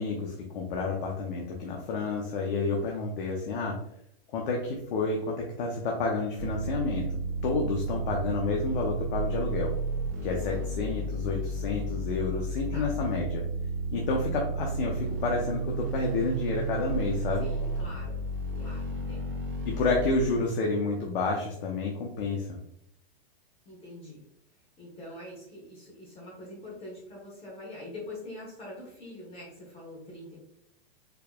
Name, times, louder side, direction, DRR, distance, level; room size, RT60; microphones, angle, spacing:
voice 1, 0.0-3.7 4.3-7.1 7.4-9.7 10.2-13.4 13.9-17.5 19.6-22.6, left 3 dB, 60° left, -1 dB, 0.8 m, -30 dB
sound 1, 6.4-20.1, right 2 dB, 35° right, 1.4 m, -32 dB
voice 2, 17.4-18.2 18.6-19.4 23.6-24.2 24.8-30.4, left 1 dB, 20° left, -4 dB, 1.0 m, -44 dB
4.5 x 2.7 x 2.2 m, 0.74 s
hypercardioid pair, 145°, 30 cm